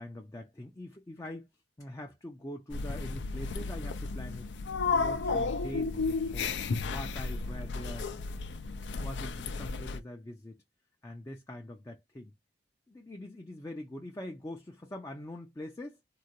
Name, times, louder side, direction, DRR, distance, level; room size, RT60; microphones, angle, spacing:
voice 1, 0.0-1.5 1.8-4.5 4.9-6.5 6.8-8.1 9.0-10.6 11.0-12.3 12.9-16.0, left 1 dB, 15° left, 0.4 m, -43 dB
sound 1, 2.7-10.0, left 4 dB, 75° left, 0.4 m, -33 dB
3.7 x 2.1 x 2.9 m
head